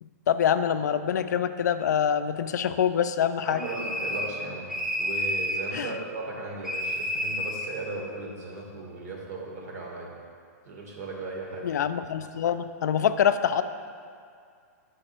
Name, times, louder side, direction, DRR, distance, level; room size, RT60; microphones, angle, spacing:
voice 1, 0.0-3.7 5.7-6.0 11.6-13.6, left 8 dB, 80° left, 11 dB, 0.4 m, -25 dB
voice 2, 3.4-4.7 5.0-10.1 10.7-11.7, right 3 dB, 60° right, -2 dB, 1.7 m, -37 dB
sound 1, 3.6-4.4 4.7-5.7 6.6-7.7, left 1 dB, 5° right, 0.5 m, -30 dB
6.7 x 5.0 x 4.3 m, 2.2 s
hypercardioid pair, 145°, 9 cm